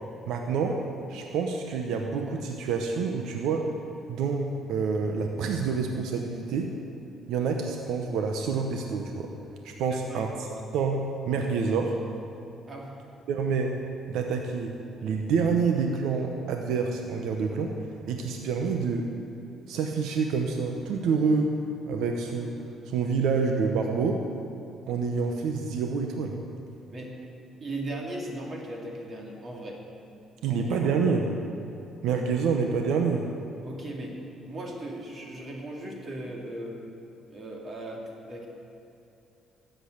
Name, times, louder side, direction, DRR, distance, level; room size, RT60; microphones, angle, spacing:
voice 1, 0.3-0.8 1.1-3.6 4.1-6.7 7.3-9.3 9.6-10.3 10.7-12.0 13.3-13.7 14.1-14.7 15.0-17.7 18.1-19.1 19.7-21.5 21.9-22.5 22.9-24.2 24.9-26.4 30.4-31.3 32.0-33.3, right 5 dB, 85° right, 3 dB, 1.0 m, -27 dB
voice 2, 9.9-10.3 12.7-13.0 26.9-27.2 27.6-29.8 30.5-30.6 33.6-34.2 34.5-37.0 37.3-38.5, right 1 dB, 40° right, -1 dB, 2.6 m, -37 dB
13.0 x 7.9 x 7.9 m, 2.7 s
cardioid pair, 95°, 0 cm